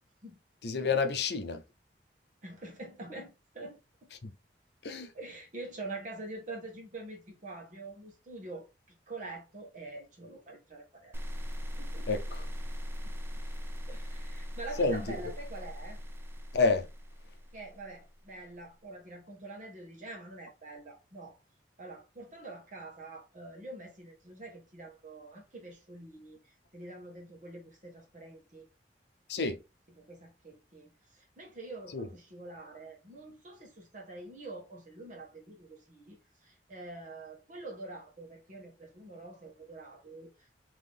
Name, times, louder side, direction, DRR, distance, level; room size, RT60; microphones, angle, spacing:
voice 1, 0.6-1.6 4.2-4.3 4.8-5.1 12.1-12.4 14.8-15.2 16.5-16.9 29.3-29.6 31.9-32.1, left 4 dB, 65° left, 0.6 m, -29 dB
voice 2, 2.4-3.8 5.1-11.1 11.8-12.2 13.0-13.1 13.9-16.0 17.5-21.4 21.8-28.7 29.9-40.6, right 2 dB, 45° right, 1.3 m, -46 dB
sound 1, 11.1-18.3, equal, 15° right, 0.5 m, -40 dB
3.6 x 3.0 x 3.4 m
head